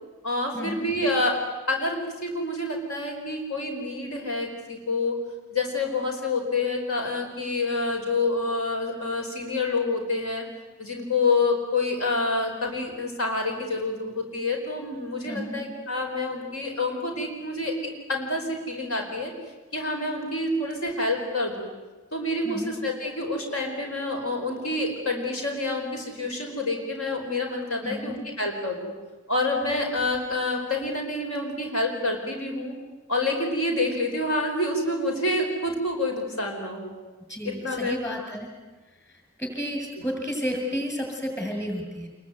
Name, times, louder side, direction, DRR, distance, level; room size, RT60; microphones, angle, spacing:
voice 1, 0.2-1.4 1.7-5.2 5.5-10.4 10.8-17.7 18.1-19.3 19.7-21.7 22.1-28.9 29.3-32.7 33.1-36.9 37.4-38.0, left 2 dB, 65° left, 2 dB, 5.0 m, -27 dB
voice 2, 15.3-15.6 22.4-22.7 27.8-28.2 37.3-38.5 39.4-42.1, equal, 15° left, 2 dB, 7.5 m, -31 dB
27.5 x 23.0 x 9.5 m, 1.2 s
head